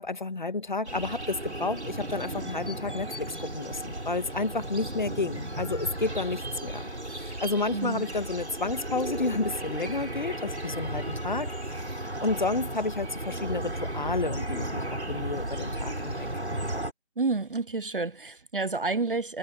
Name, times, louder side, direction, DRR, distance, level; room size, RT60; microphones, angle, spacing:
voice 1, 0.0-6.8 7.1-11.8 12.2-16.3, left 3 dB, 45° left, 1.5 m, -31 dB
sound 1, 0.8-16.9, right 1 dB, 80° right, 4.0 m, -35 dB
voice 2, 7.7-8.0 17.2-19.4, right 3 dB, 55° right, 0.6 m, -29 dB
figure-of-eight pair, 160°, 33 cm